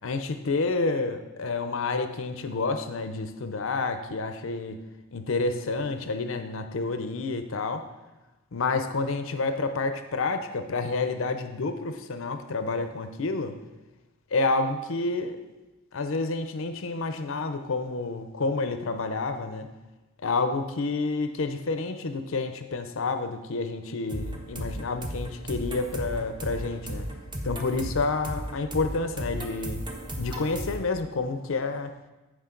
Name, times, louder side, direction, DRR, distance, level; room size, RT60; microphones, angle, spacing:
voice 1, 0.0-4.8 5.1-7.8 8.5-13.6 14.3-15.4 15.9-19.7 20.2-27.1 27.4-29.8 30.2-31.9, left 3 dB, 65° left, 8 dB, 0.6 m, -29 dB
sound 1, 24.1-30.8, right 1 dB, 20° right, 0.9 m, -35 dB
14.0 x 4.9 x 3.8 m, 1.1 s
head